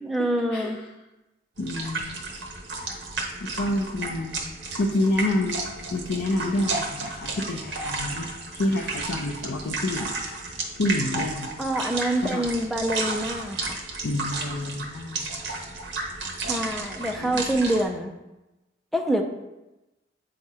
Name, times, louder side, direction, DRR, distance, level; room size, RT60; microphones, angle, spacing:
voice 1, 0.0-0.8 11.6-13.8 16.5-18.1 18.9-19.2, right 1 dB, ahead, 2 dB, 0.4 m, -26 dB
voice 2, 1.6-2.2 3.4-4.5 4.8-10.1 10.8-11.5 12.2-12.5 14.0-15.3 17.2-17.5, left 1 dB, 70° left, 0 dB, 0.5 m, -28 dB
sound 1, 1.6-17.8, right 3 dB, 60° right, 0.9 m, -33 dB
7.6 x 2.8 x 4.7 m, 1.0 s
head